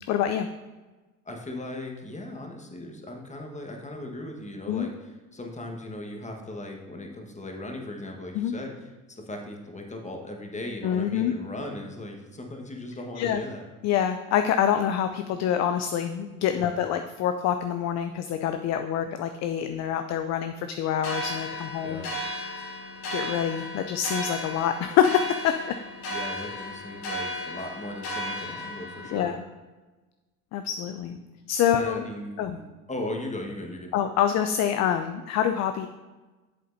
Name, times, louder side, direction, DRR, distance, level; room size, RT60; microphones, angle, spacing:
voice 1, 0.1-0.5 4.7-4.9 8.3-8.5 10.8-11.3 13.2-13.4 13.8-22.1 23.1-25.8 29.1-29.4 30.5-31.2 31.5-32.0 32.4-32.6 33.9-35.9, left 9 dB, 40° left, 8 dB, 0.4 m, -26 dB
voice 2, 1.2-13.6 16.5-16.8 21.8-22.1 26.1-29.3 31.7-33.9, left 1 dB, 15° left, 2 dB, 1.3 m, -38 dB
sound 1, 21.0-29.2, equal, 80° left, 2.1 m, -35 dB
8.3 x 7.5 x 2.6 m, 1.2 s
hypercardioid pair, 65°, 46 cm